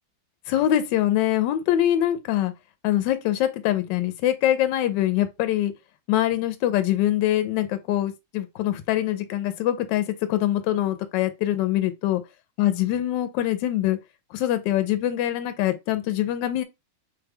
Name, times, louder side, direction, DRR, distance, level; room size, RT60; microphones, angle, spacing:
voice 1, 0.5-2.5 2.8-5.7 6.1-12.2 12.6-14.0 14.3-16.6, left 13 dB, 75° left, 1.2 m, -24 dB
3.2 x 2.2 x 3.5 m
omnidirectional pair, 2.2 m